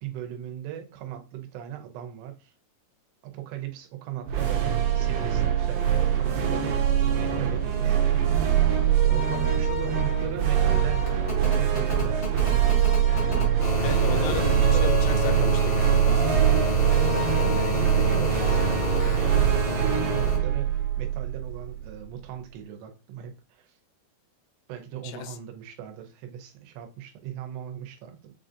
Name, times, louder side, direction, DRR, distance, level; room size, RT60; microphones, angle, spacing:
voice 1, 0.0-2.5 3.2-6.8 7.1-8.2 9.0-12.6 13.5-15.0 16.8-23.8 24.7-28.3, right 10 dB, 90° right, 2.9 m, -39 dB
sound 1, 4.2-21.7, right 9 dB, 70° right, 2.6 m, -23 dB
sound 2, 9.6-20.4 21.8-21.9, left 2 dB, 50° left, 0.8 m, -30 dB
voice 2, 13.8-14.5 14.8-16.2 25.0-25.4, left 12 dB, 85° left, 2.6 m, -34 dB
6.9 x 2.5 x 2.6 m
omnidirectional pair, 4.7 m